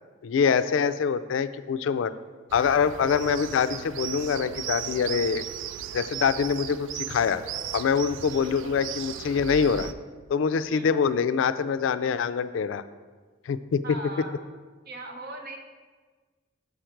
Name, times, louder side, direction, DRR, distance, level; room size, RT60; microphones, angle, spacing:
voice 1, 0.2-2.1 2.5-5.4 5.9-7.4 7.7-9.9 10.3-12.8 13.5-14.0, left 6 dB, 85° left, 13 dB, 0.3 m, -25 dB
sound 1, 2.5-9.9, right 10 dB, 80° right, 0.3 m, -36 dB
voice 2, 13.8-14.4 14.9-15.6, right 2 dB, 55° right, 4 dB, 0.8 m, -39 dB
7.1 x 5.0 x 4.5 m, 1.4 s
head